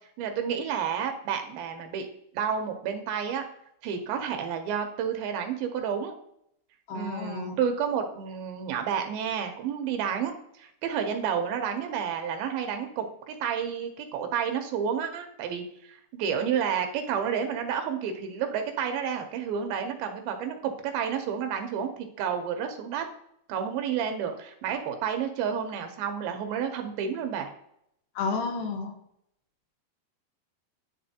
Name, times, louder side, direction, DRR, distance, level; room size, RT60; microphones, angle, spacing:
voice 1, 0.2-2.1 2.3-3.4 3.8-6.2 6.9-21.9 22.2-23.1 23.5-27.5, right 7 dB, 80° right, 5 dB, 2.4 m, -30 dB
voice 2, 6.9-7.6 28.2-29.0, left 4 dB, 75° left, 4 dB, 2.4 m, -31 dB
10.0 x 3.8 x 2.7 m, 0.75 s
omnidirectional pair, 4.5 m